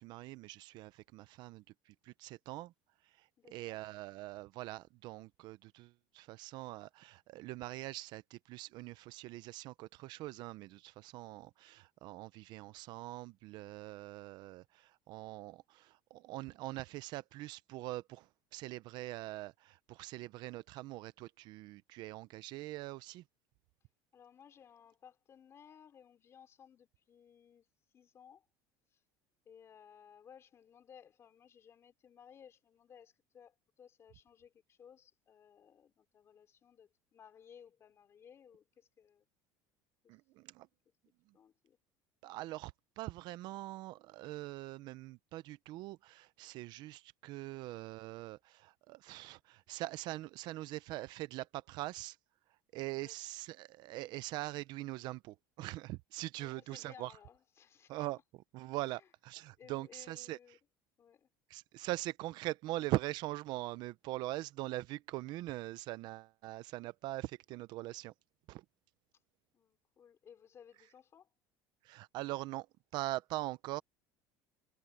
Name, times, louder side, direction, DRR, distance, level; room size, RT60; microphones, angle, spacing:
voice 1, 0.0-2.7 3.2-23.2 40.1-40.7 42.2-52.2 52.7-57.1 57.9-60.4 61.5-68.1 68.5-68.6 71.8-72.7 72.9-73.8, right 18 dB, 55° right, 0.7 m, -42 dB
voice 2, 3.4-3.8 24.1-27.7 27.9-28.5 28.9-29.0 29.4-39.3 40.0-40.2 41.3-41.8 52.9-53.2 56.4-58.1 58.8-59.1 59.6-60.6 61.0-61.3 69.5-71.3, left 8 dB, 30° left, 3.2 m, -59 dB
cardioid pair, 140°, 9 cm